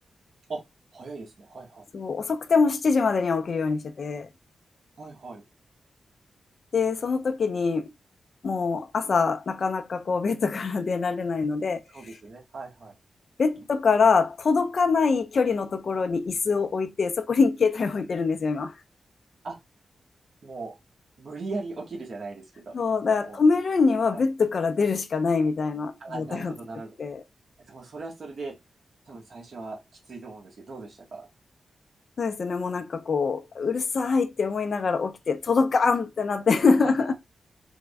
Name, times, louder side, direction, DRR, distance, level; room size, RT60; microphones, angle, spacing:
voice 1, 0.9-1.9 5.0-5.4 11.9-13.0 19.4-19.6 20.4-20.7 21.2-22.8 23.2-23.4 24.1-24.2 26.0-26.9 27.6-28.6 29.1-29.8 30.1-31.3 36.8-37.1, right 3 dB, 60° right, 1.1 m, -38 dB
voice 2, 1.9-4.3 6.7-7.9 8.4-11.8 13.4-18.7 22.7-26.5 27.0-27.2 32.2-37.1, left 4 dB, 60° left, 0.5 m, -24 dB
3.5 x 2.1 x 3.4 m
cardioid pair, 90°, 0 cm